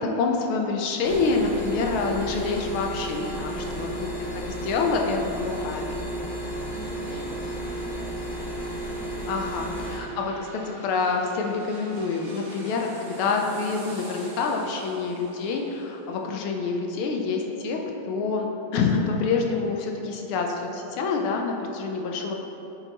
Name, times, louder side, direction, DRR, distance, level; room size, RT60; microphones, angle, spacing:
voice 1, 0.0-3.9 4.2-6.1 9.3-17.8 18.1-22.4, left 4 dB, 75° left, 2 dB, 1.5 m, -27 dB
sound 1, 1.0-10.0, right 1 dB, 55° left, 0.5 m, -33 dB
voice 2, 3.4-4.0 6.2-9.6, right 1 dB, 80° right, -4 dB, 2.1 m, -45 dB
sound 2, 8.7-18.0 18.4-18.5, right 1 dB, 65° right, 0.5 m, -46 dB
8.1 x 4.5 x 3.9 m, 3.0 s
omnidirectional pair, 2.4 m